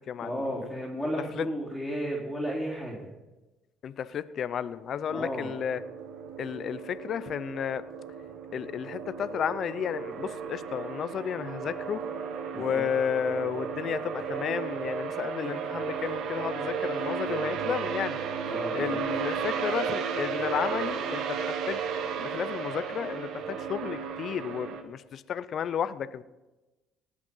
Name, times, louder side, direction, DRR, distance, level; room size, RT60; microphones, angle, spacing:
voice 1, 0.2-3.1 5.1-5.5 12.5-12.8 18.5-19.0, equal, 5° left, -6 dB, 3.5 m, -33 dB
voice 2, 3.8-5.8 6.4-7.8 8.5-12.0 12.6-18.2 18.7-21.4 21.7-21.8 22.2-26.2, left 8 dB, 55° left, 15 dB, 0.5 m, -32 dB
sound 1, 5.1-24.8, right 6 dB, 70° right, 1.2 m, -34 dB
19.0 x 6.3 x 5.5 m, 1.1 s
supercardioid pair, 90°, 0 cm